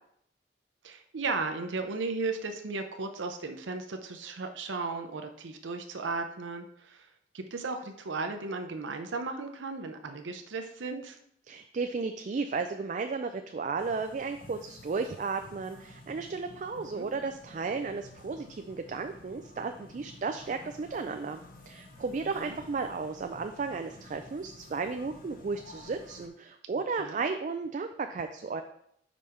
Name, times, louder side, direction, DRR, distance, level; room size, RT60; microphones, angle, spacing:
voice 1, 0.8-7.1 7.3-11.2 16.9-17.1 22.4-22.6 27.0-27.2, right 3 dB, 85° right, 6 dB, 0.6 m, -35 dB
voice 2, 11.5-21.4 21.7-28.6, right 4 dB, 40° right, 6 dB, 0.3 m, -34 dB
sound 1, 13.8-26.3, left 1 dB, 50° left, 0.8 m, -52 dB
5.3 x 5.0 x 4.4 m, 0.71 s
head